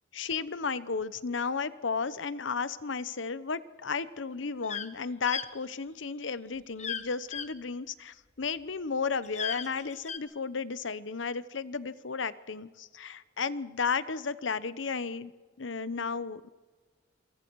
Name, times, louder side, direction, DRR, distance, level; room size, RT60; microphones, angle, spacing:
voice 1, 0.1-15.3 15.6-16.5, left 5 dB, 70° left, 16 dB, 0.8 m, -33 dB
sound 1, 4.6-4.9 5.3-5.5 6.8-7.0 7.3-7.5 9.2-10.2, left 7 dB, 35° left, 1.0 m, -35 dB
27.0 x 24.5 x 4.7 m, 1.4 s
head